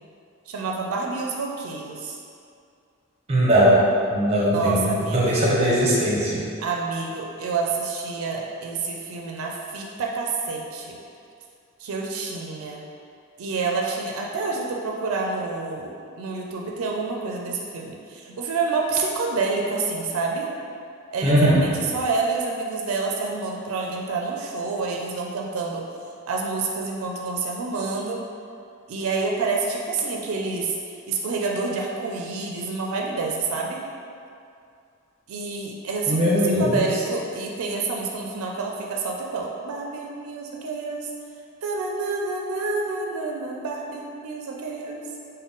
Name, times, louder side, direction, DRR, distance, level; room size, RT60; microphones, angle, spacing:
voice 1, 0.5-2.2 4.5-5.3 6.6-11.0 11.8-12.8 13.4-20.5 21.1-25.8 26.3-28.2 28.9-30.8 31.1-33.8 35.3-41.1 41.6-45.0, right 4 dB, 90° right, -1 dB, 0.4 m, -28 dB
voice 2, 3.3-3.8 4.1-6.4 21.2-21.6 36.1-36.8, equal, 30° right, -5 dB, 0.6 m, -19 dB
3.6 x 2.1 x 3.8 m, 2.4 s
head